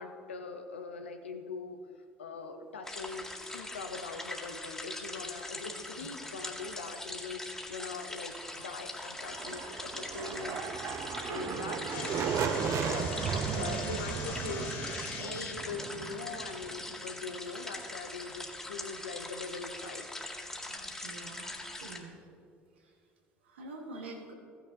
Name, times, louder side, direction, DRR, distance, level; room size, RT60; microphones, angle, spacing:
voice 1, 0.0-1.9 2.2-10.7 11.2-20.2, left 4 dB, 90° left, 6 dB, 0.7 m, -42 dB
sound 1, 2.8-22.0, left 1 dB, 10° left, 2.0 m, -42 dB
sound 2, 9.2-17.0, right 6 dB, 50° right, 0.6 m, -35 dB
voice 2, 11.4-11.9 20.6-22.1 22.8-22.9 23.4-24.3, right 3 dB, 85° right, 2 dB, 1.3 m, -47 dB
sound 3, 11.9-15.5, left 5 dB, 60° left, 2.8 m, -42 dB
15.0 x 9.9 x 2.7 m, 2.3 s
hypercardioid pair, 60°, 6 cm